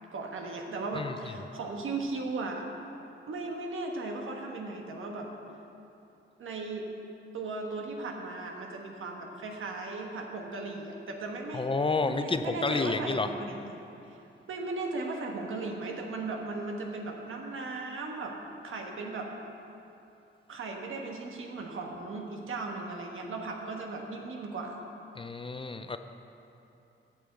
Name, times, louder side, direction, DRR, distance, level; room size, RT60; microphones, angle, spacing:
voice 1, 0.1-2.7 3.3-5.3 6.4-6.9 7.3-11.6 12.0-13.6 14.1-14.2 14.5-18.3 18.6-19.3 20.5-24.8, right 3 dB, 85° right, 1 dB, 1.3 m, -37 dB
voice 2, 0.9-1.3 11.5-13.3 25.2-26.0, left 3 dB, 25° left, 9 dB, 0.5 m, -30 dB
8.7 x 7.4 x 7.6 m, 2.8 s
wide cardioid pair, 110°, 20 cm